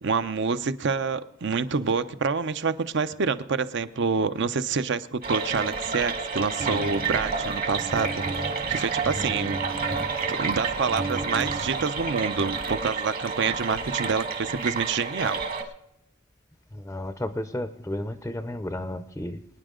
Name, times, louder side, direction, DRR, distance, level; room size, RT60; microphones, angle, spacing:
voice 1, 0.0-8.2 8.7-9.6 10.3-15.4, right 5 dB, 65° right, 0.7 m, -27 dB
sound 1, 5.2-15.6, right 5 dB, 50° right, 1.6 m, -30 dB
sound 2, 6.6-13.2, right 2 dB, 30° right, 0.8 m, -37 dB
voice 2, 9.0-9.5 16.7-19.4, left 1 dB, 10° left, 0.5 m, -33 dB
25.0 x 9.8 x 3.8 m
head